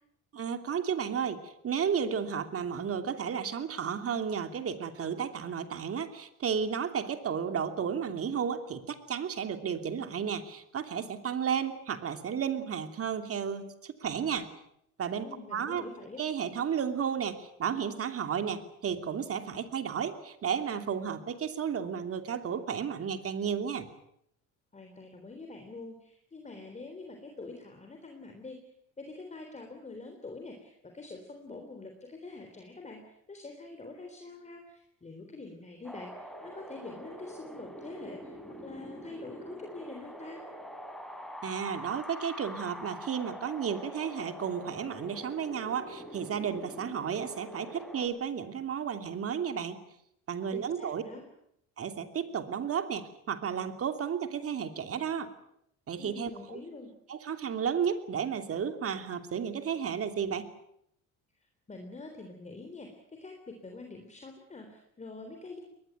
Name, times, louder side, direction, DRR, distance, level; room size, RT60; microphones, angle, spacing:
voice 1, 0.3-14.5 15.0-15.3 15.5-15.8 16.2-23.9 41.4-49.8 50.3-51.0 51.8-55.3 55.9-56.6 57.1-60.5, right 7 dB, 40° right, 8 dB, 2.9 m, -33 dB
voice 2, 15.2-16.2 24.7-28.6 29.0-40.4 50.5-51.2 56.0-56.9 61.7-65.6, left 3 dB, 20° left, 4 dB, 3.7 m, -45 dB
Wind, 35.8-48.1, equal, ahead, 4.6 m, -44 dB
22.5 x 20.0 x 9.1 m, 0.76 s
cardioid pair, 115°, 34 cm